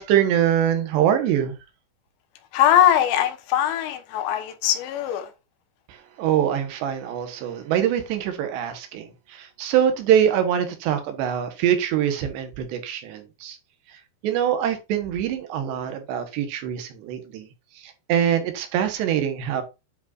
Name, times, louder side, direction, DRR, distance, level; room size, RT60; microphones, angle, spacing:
voice 1, 0.0-1.6 5.9-13.6 13.9-17.5 17.8-19.6, right 9 dB, 75° right, 3.3 m, -24 dB
voice 2, 2.5-5.3, left 10 dB, 80° left, 3.2 m, -21 dB
9.5 x 5.6 x 2.5 m
omnidirectional pair, 5.1 m